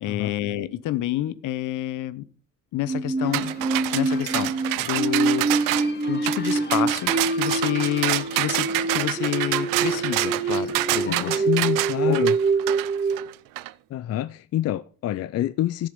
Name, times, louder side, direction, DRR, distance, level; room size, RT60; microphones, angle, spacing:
voice 1, 0.0-2.2 2.7-3.5 3.9-5.5 6.1-11.3 12.1-12.3, left 13 dB, 70° left, 0.9 m, -28 dB
sound 1, 2.9-13.3, right 4 dB, 20° right, 1.0 m, -25 dB
sound 2, 3.2-11.7, left 5 dB, 30° left, 1.4 m, -41 dB
sound 3, 3.3-13.7, right 18 dB, 85° right, 0.6 m, -27 dB
voice 2, 11.1-12.4 13.9-15.9, left 13 dB, 50° left, 0.5 m, -27 dB
13.5 x 7.5 x 5.3 m
cardioid pair, 125°, 32 cm